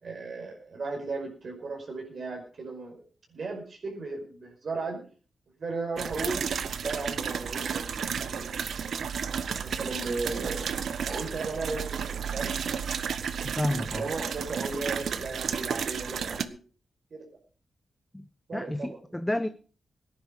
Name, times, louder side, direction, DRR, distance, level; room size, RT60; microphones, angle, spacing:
voice 1, 0.0-3.0 3.3-5.0 5.6-6.5 6.8-9.0 9.6-10.7 11.1-12.7 13.9-16.6 17.1-17.3 18.5-19.2, right 3 dB, 55° right, 5.3 m, -36 dB
sound 1, 6.0-16.4, right 7 dB, 75° right, 1.0 m, -32 dB
voice 2, 13.4-14.1 18.1-19.5, left 1 dB, 10° left, 0.7 m, -31 dB
18.0 x 10.5 x 4.9 m
wide cardioid pair, 115°, 0 cm